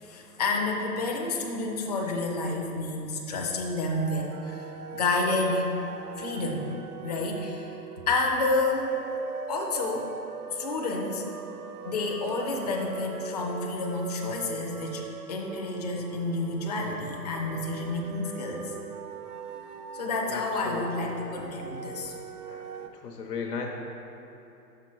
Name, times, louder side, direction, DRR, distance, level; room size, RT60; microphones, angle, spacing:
voice 1, 0.0-5.7 6.2-6.7 7.0-7.8 8.1-8.9 9.5-10.1 10.5-11.2 11.8-18.7 19.9-22.1, left 2 dB, 25° left, 0 dB, 0.4 m, -30 dB
sound 1, 3.9-22.9, right 7 dB, 65° right, 0.6 m, -42 dB
voice 2, 20.3-21.1 22.5-22.7 23.0-23.7, left 5 dB, 70° left, 1 dB, 0.8 m, -35 dB
5.9 x 5.7 x 4.4 m, 3.0 s
figure-of-eight pair, 130°, 48 cm